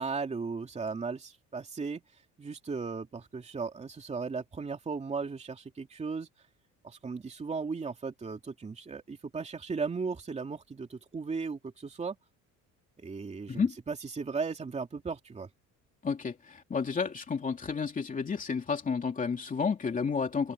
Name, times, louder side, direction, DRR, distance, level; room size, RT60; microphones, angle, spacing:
voice 1, 0.0-2.0 2.4-6.3 6.8-12.2 13.0-15.5, right 4 dB, 20° right, 2.9 m, -36 dB
voice 2, 16.0-20.5, left 5 dB, 25° left, 2.9 m, -31 dB
open air
cardioid pair, 135°, 31 cm